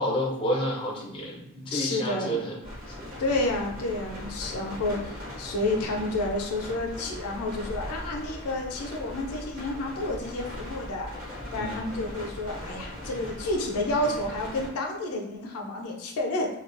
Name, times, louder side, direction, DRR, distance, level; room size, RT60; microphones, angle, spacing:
voice 1, 0.0-2.6 2.9-3.1 11.5-11.8, equal, 25° left, -3 dB, 0.5 m, -30 dB
voice 2, 1.7-2.4 3.2-11.1 11.5-16.5, left 2 dB, 85° left, 1 dB, 0.4 m, -30 dB
sound 1, 2.6-14.7, left 1 dB, 40° right, 0.9 m, -39 dB
2.3 x 2.2 x 2.4 m, 0.81 s
head